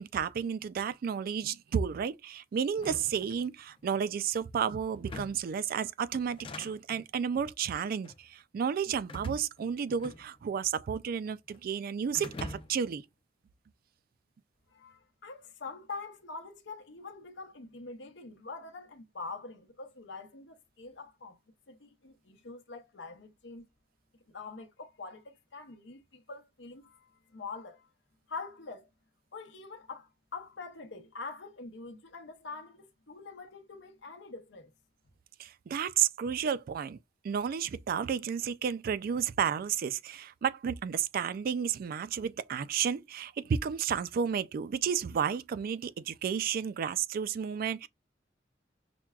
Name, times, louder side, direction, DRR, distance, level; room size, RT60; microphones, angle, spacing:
voice 1, 0.0-13.0 35.4-37.0 37.2-47.9, right 7 dB, 50° right, 0.3 m, -32 dB
sound 1, 2.7-3.9 4.9-5.6 6.2-7.1 7.9-8.3 9.1-10.6 10.9-11.6 12.1-12.9, left 2 dB, 30° left, 0.6 m, -45 dB
voice 2, 14.7-21.4 21.7-23.6 24.3-27.9 28.3-28.9 29.3-34.7, left 4 dB, 75° left, 0.8 m, -45 dB
5.9 x 2.2 x 2.3 m
head